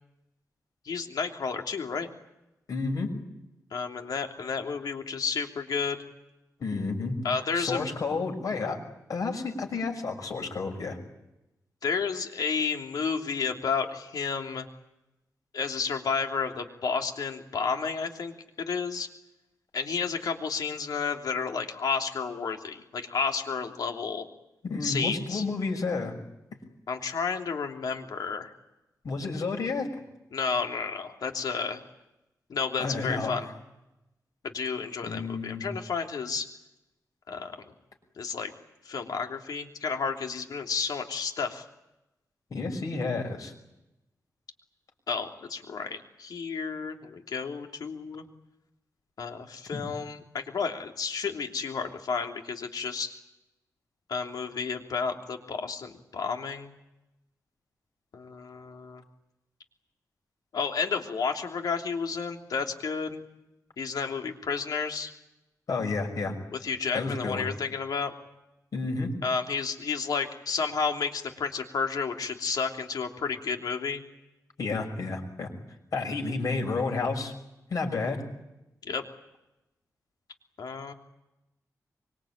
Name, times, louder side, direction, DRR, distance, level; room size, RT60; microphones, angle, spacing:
voice 1, 0.8-2.1 3.7-6.0 7.2-7.9 11.8-14.7 15.5-19.1 19.7-24.3 24.8-25.4 26.9-28.5 30.3-31.8 32.5-33.5 34.4-36.5 37.3-37.6 38.2-38.5 38.8-41.6 45.1-48.2 49.2-53.1 54.1-56.7 58.1-59.0 60.5-63.2 63.8-65.1 66.6-68.1 69.2-74.0 78.8-79.0 80.6-80.9, left 5 dB, 80° left, 3 dB, 3.1 m, -31 dB
voice 2, 2.7-3.1 6.6-7.2 7.5-8.8 9.1-11.0 24.6-26.2 29.0-29.9 32.8-33.3 35.0-35.7 42.5-43.5 49.7-49.8 65.7-66.3 66.9-67.5 68.7-69.1 74.6-75.5 75.9-77.3 77.7-78.2, left 3 dB, 65° left, 3 dB, 6.3 m, -30 dB
25.0 x 24.0 x 8.8 m, 0.93 s
wide cardioid pair, 170°, 7 cm